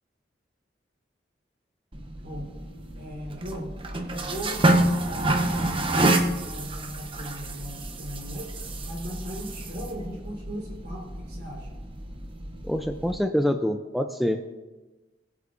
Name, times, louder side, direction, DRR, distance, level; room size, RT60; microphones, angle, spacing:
sound 1, 1.9-13.2, right 1 dB, 30° right, 0.8 m, -28 dB
voice 1, 3.0-3.7 4.1-5.6 6.0-8.5 8.9-11.7, equal, 60° right, -3 dB, 4.0 m, -38 dB
voice 2, 12.6-14.4, equal, ahead, 5 dB, 0.4 m, -26 dB
20.5 x 8.0 x 2.5 m, 1.2 s
head